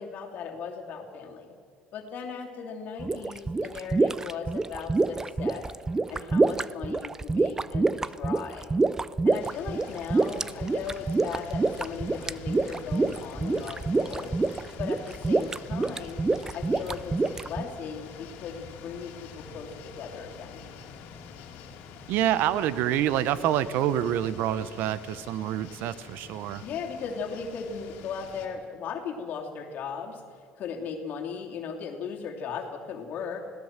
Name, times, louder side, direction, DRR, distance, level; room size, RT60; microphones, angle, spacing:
voice 1, 0.0-1.5 1.9-5.7 6.1-8.7 9.2-14.3 14.8-16.2 16.5-20.6 26.6-33.5, left 6 dB, 55° left, 1 dB, 2.8 m, -37 dB
sound 1, 3.0-17.6, right 3 dB, 15° right, 0.5 m, -26 dB
sound 2, 9.4-28.5, left 6 dB, 80° left, 2.6 m, -46 dB
voice 2, 22.1-26.6, right 11 dB, 70° right, 16 dB, 0.9 m, -27 dB
20.5 x 17.0 x 7.4 m, 2.2 s
cardioid pair, 120°, 3 cm